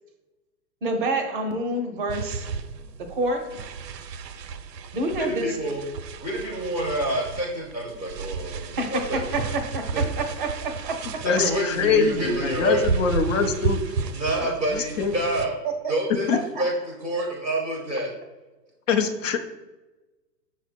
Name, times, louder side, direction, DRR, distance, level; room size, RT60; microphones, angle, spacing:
voice 1, 0.8-2.5 3.1-3.4 4.9-5.6 8.8-11.0 16.5-16.6, right 2 dB, 30° right, 4 dB, 0.6 m, -27 dB
sound 1, 2.1-15.5, right 5 dB, 75° right, 0.6 m, -33 dB
voice 2, 5.1-5.8 6.2-9.5 9.9-10.0 11.2-12.8 14.1-15.6 15.9-16.7 17.0-18.1, right 1 dB, 15° left, -13 dB, 0.3 m, -28 dB
voice 3, 11.2-13.8 14.4-15.1 16.3-16.4 18.9-19.4, left 5 dB, 50° left, 6 dB, 0.6 m, -24 dB
6.1 x 2.1 x 4.2 m, 1.1 s
figure-of-eight pair, 120°, 50 cm